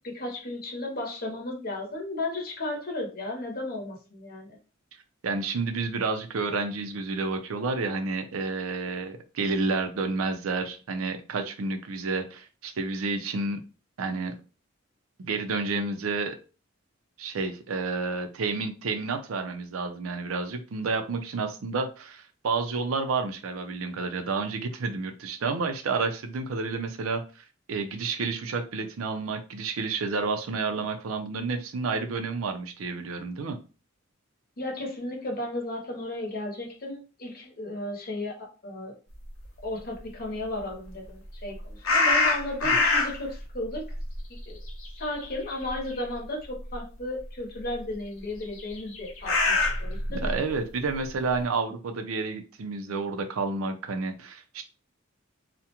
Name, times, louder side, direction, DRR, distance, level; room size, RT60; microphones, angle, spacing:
voice 1, 0.0-4.6 34.6-38.9 39.6-43.8 44.5-44.6 45.0-50.3, left 1 dB, 50° left, 1 dB, 0.8 m, -34 dB
voice 2, 5.2-13.6 14.0-14.4 15.2-16.4 17.2-33.6 42.6-42.8 50.1-54.6, right 4 dB, 90° right, 6 dB, 0.5 m, -30 dB
sound 1, 41.8-43.3 43.7-45.4 45.7-45.9 46.7-46.8 48.6-50.4, left 3 dB, 90° left, 0.7 m, -24 dB
2.4 x 2.1 x 2.8 m, 0.34 s
head